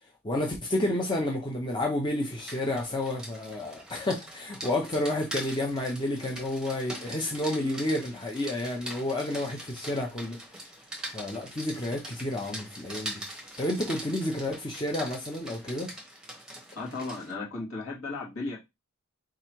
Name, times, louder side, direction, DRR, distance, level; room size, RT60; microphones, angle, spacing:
voice 1, 0.2-10.6 11.1-13.2 13.6-15.9, left 1 dB, 20° left, 0.8 m, -30 dB
Rain, 2.2-17.3, right 1 dB, 5° right, 1.1 m, -42 dB
voice 2, 16.7-18.6, left 3 dB, 65° left, 2.4 m, -35 dB
3.6 x 3.1 x 4.5 m
head